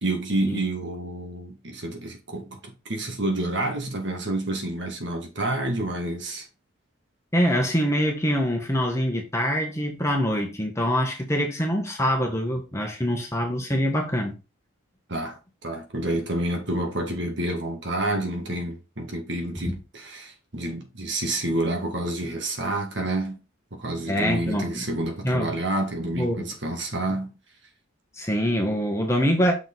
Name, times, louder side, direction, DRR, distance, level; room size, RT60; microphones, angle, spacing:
voice 1, 0.0-6.5 15.1-23.4 23.7-27.4, right 1 dB, 60° right, 1.8 m, -29 dB
voice 2, 7.3-14.4 24.1-24.9 25.2-25.5 26.1-26.5 28.2-29.6, equal, 15° left, 1.3 m, -24 dB
6.3 x 5.0 x 4.0 m
head